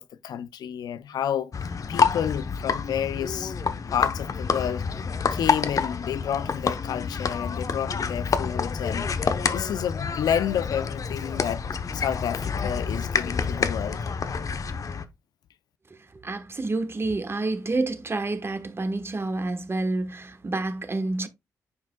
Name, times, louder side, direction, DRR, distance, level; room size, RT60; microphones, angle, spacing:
voice 1, 0.0-1.5 1.9-3.5 3.9-4.9 5.3-9.1 9.5-11.6 11.9-14.0, left 9 dB, 80° left, 0.5 m, -30 dB
sound 1, 1.5-15.1, left 5 dB, 55° left, 0.8 m, -28 dB
voice 2, 15.9-21.3, right 2 dB, 35° right, 1.2 m, -29 dB
9.4 x 5.0 x 2.2 m
supercardioid pair, 55°, 7 cm